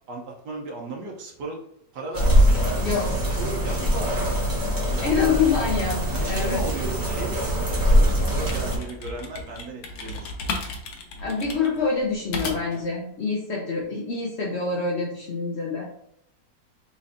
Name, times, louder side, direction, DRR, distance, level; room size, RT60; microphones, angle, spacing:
voice 1, 0.1-1.6 1.9-4.3 5.0-5.4 6.1-10.3, right 2 dB, 75° right, -1 dB, 1.3 m, -36 dB
sound 1, 2.1-8.8, equal, 20° right, 0.7 m, -22 dB
voice 2, 2.8-3.2 5.0-6.0 6.3-6.6 11.2-15.9, left 5 dB, 60° left, -2 dB, 0.7 m, -26 dB
sound 2, 8.4-12.9, left 3 dB, 75° left, 1.2 m, -34 dB
4.1 x 3.1 x 2.5 m, 0.74 s
omnidirectional pair, 1.8 m